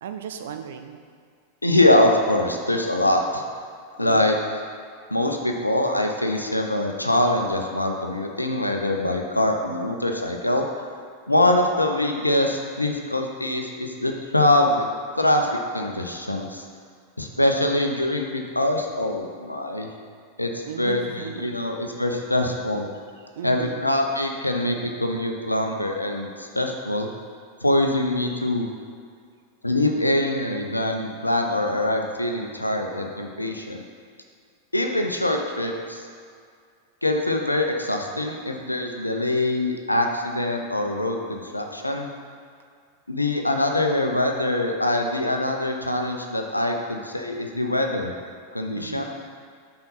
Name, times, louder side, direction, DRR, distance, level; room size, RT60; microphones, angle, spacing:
voice 1, 0.0-1.0 4.0-4.3 20.6-21.6 23.2-24.0 48.8-49.0, right 8 dB, 60° right, 7 dB, 0.5 m, -36 dB
voice 2, 1.6-3.4 4.0-4.3 5.1-10.7 11.3-14.8 15.2-16.6 17.2-19.9 20.4-22.9 23.4-27.1 27.6-28.7 29.6-33.8 34.7-36.0 37.0-42.1 43.1-48.1 48.5-49.0, left 1 dB, 85° left, 3 dB, 0.6 m, -23 dB
5.6 x 4.1 x 5.5 m, 2.2 s
figure-of-eight pair, 90°, 0 cm